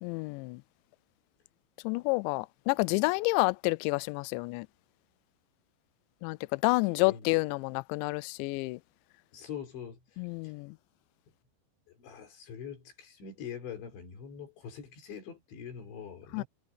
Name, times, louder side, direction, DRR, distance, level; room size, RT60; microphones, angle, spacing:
voice 1, 0.0-0.6 1.8-4.7 6.2-8.8 10.2-10.8 16.3-16.4, left 25 dB, 90° left, 2.6 m, -29 dB
voice 2, 9.3-10.5 11.9-16.5, left 7 dB, 65° left, 6.7 m, -44 dB
omnidirectional pair, 5.7 m